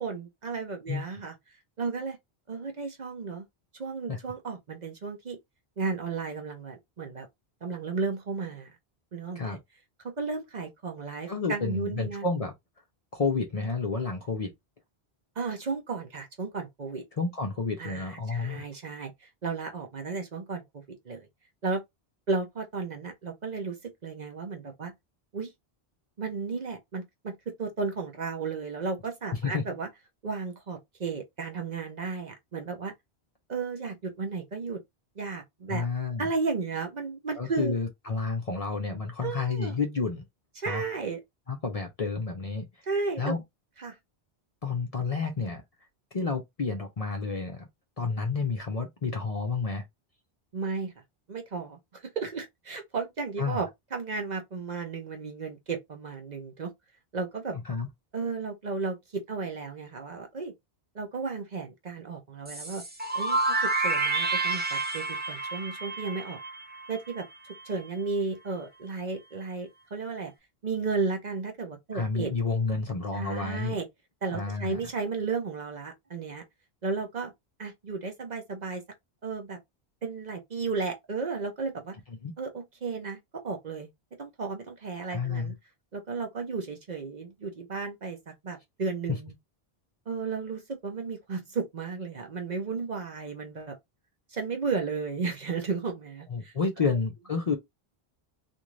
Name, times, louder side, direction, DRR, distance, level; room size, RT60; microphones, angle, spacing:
voice 1, 0.0-1.3 1.8-2.2 2.5-3.5 3.7-5.4 5.8-7.3 7.6-8.7 9.1-9.6 10.0-12.2 15.4-17.0 17.8-19.1 19.4-21.3 21.6-21.8 22.3-23.8 24.0-24.9 25.3-25.5 26.2-29.9 30.2-32.9 33.5-34.8 35.2-35.9 36.2-37.8 39.2-39.7 40.6-41.2 42.9-43.4 43.8-44.0 50.5-50.9 51.3-51.8 52.2-56.7 57.1-57.5 58.1-60.5 60.9-62.8 63.1-66.4 66.9-67.3 67.6-70.3 70.6-72.3 73.1-73.9 74.2-76.4 76.8-77.3 77.6-78.8 79.2-79.6 80.0-81.9 82.4-83.2 83.4-83.9 84.2-85.6 85.9-89.3 90.1-93.8 94.3-96.5 96.9-97.0, right 4 dB, 50° right, 0.8 m, -34 dB
voice 2, 11.3-12.5 13.1-14.5 17.2-18.6 29.4-29.6 35.7-36.3 37.4-40.2 40.7-40.8 41.5-42.7 43.2-43.4 44.6-45.6 46.1-47.7 48.0-49.8 53.4-53.6 57.5-57.9 71.9-73.8 74.3-74.8 82.1-82.3 85.1-85.5 96.3-97.6, left 4 dB, 45° left, 0.6 m, -30 dB
sound 1, 62.5-67.2, right 3 dB, 15° right, 0.4 m, -29 dB
2.6 x 2.5 x 3.1 m
omnidirectional pair, 1.1 m